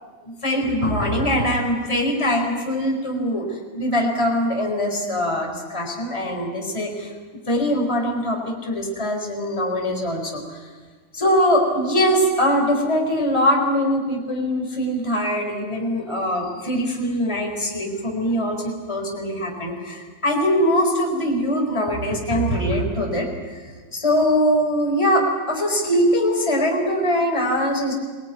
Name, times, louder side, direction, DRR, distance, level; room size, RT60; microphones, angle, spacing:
voice 1, 0.2-3.5 3.7-10.4 11.1-23.3 23.9-27.9, equal, 10° left, 1 dB, 4.5 m, -22 dB
26.0 x 19.0 x 9.4 m, 1.4 s
omnidirectional pair, 3.5 m